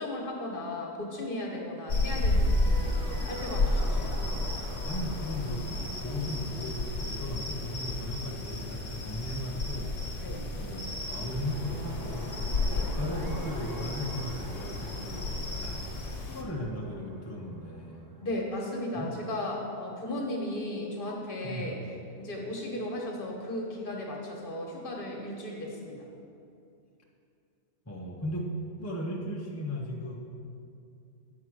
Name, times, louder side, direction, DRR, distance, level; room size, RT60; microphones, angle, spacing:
voice 1, 0.0-3.8 10.2-10.4 12.6-12.9 18.2-21.8 22.2-26.1, left 1 dB, 50° left, 0 dB, 1.4 m, -35 dB
sound 1, 1.9-16.4, left 2 dB, 70° left, 1.1 m, -32 dB
sound 2, 2.1-9.3 11.2-19.0, right 1 dB, 20° right, 0.7 m, -46 dB
voice 2, 4.8-9.9 10.6-12.4 12.7-15.8 16.2-18.0 18.9-19.2 21.4-21.8 27.9-28.5 28.8-30.1, left 1 dB, 15° left, -2 dB, 0.6 m, -36 dB
8.3 x 4.8 x 6.1 m, 2.5 s
omnidirectional pair, 1.2 m